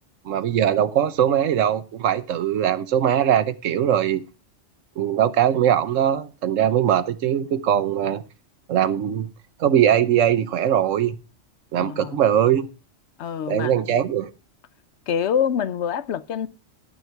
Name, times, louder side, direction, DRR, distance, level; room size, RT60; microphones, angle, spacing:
voice 1, 0.2-4.2 5.0-8.2 8.7-9.3 9.6-11.2 11.7-12.7 13.5-14.3, right 10 dB, 85° right, 1.2 m, -21 dB
voice 2, 11.8-12.2 13.2-13.7 15.1-16.5, left 8 dB, 65° left, 0.9 m, -25 dB
11.0 x 9.5 x 4.6 m
omnidirectional pair, 1.3 m